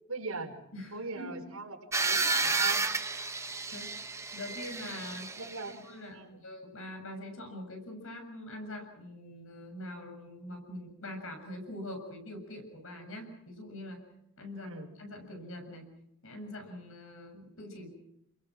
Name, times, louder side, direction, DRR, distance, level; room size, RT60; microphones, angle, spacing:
voice 1, 0.1-0.5 0.9-2.8 5.4-6.4 14.5-14.9, right 3 dB, 85° right, 3 dB, 4.9 m, -40 dB
voice 2, 0.7-1.4 3.2-5.3 5.8-14.0 14.4-14.7 15.0-15.9 16.2-17.9, left 1 dB, 65° left, 4 dB, 7.5 m, -44 dB
sound 1, 1.9-5.7, right 3 dB, 15° right, 1.2 m, -31 dB
29.5 x 23.0 x 6.3 m, 0.80 s
head